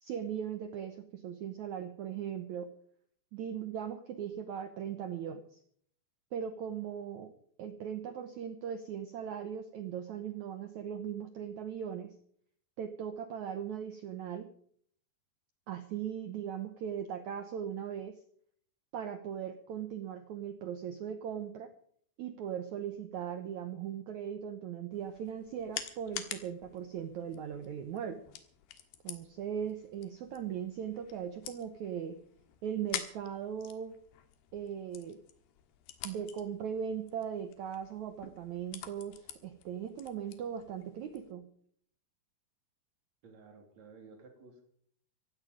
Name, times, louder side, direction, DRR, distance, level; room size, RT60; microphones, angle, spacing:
voice 1, 0.0-2.7 3.3-5.6 6.3-7.3 7.6-12.2 12.8-14.5 15.7-18.2 18.9-21.7 22.2-28.2 29.0-32.2 32.6-34.0 34.5-35.2 36.0-41.5, right 8 dB, 75° right, 9 dB, 1.7 m, -39 dB
sound 1, 24.9-41.3, left 10 dB, 80° left, 3.5 m, -48 dB
voice 2, 43.2-44.6, right 4 dB, 45° right, 5 dB, 3.8 m, -54 dB
16.0 x 15.5 x 5.1 m, 0.62 s
omnidirectional pair, 4.7 m